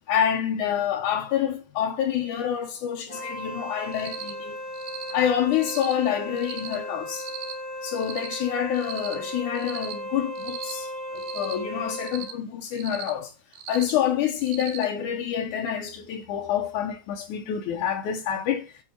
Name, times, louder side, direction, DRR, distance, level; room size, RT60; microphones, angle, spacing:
voice 1, 0.1-4.6 5.1-7.3 7.8-13.3 13.7-18.7, left 9 dB, 80° left, 2.4 m, -27 dB
Wind instrument woodwind instrument, 3.1-12.4, equal, 15° right, 1.2 m, -36 dB
Cricket, 3.9-4.3 4.7-5.1 5.6-5.9 6.4-6.8 7.1-7.5 8.0-8.4 8.7-9.2 9.6-9.9 10.4-10.7 11.2-11.5 12.0-12.3 12.7-13.1 13.5-13.9 14.4-14.9, right 11 dB, 75° right, 2.5 m, -38 dB
8.8 x 4.9 x 4.6 m
omnidirectional pair, 3.6 m